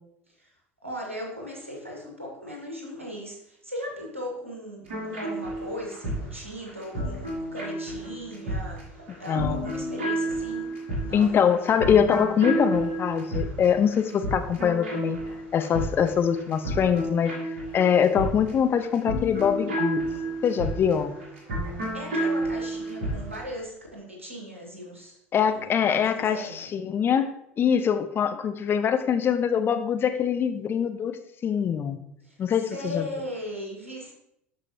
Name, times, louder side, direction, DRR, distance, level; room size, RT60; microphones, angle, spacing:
voice 1, 0.8-8.8 9.2-10.7 11.0-11.4 21.9-25.2 25.5-26.7 32.2-32.4 32.7-34.1, equal, 85° right, 0 dB, 1.7 m, -38 dB
sound 1, 4.9-23.5, right 1 dB, 65° right, 2.4 m, -31 dB
voice 2, 9.3-9.6 11.1-15.2 15.5-17.3 17.7-20.1 20.4-21.1 25.3-27.3 27.6-31.2 31.4-32.0 32.4-33.1, left 8 dB, 35° left, 9 dB, 0.7 m, -23 dB
12.5 x 5.0 x 2.9 m, 0.76 s
figure-of-eight pair, 70°, 7 cm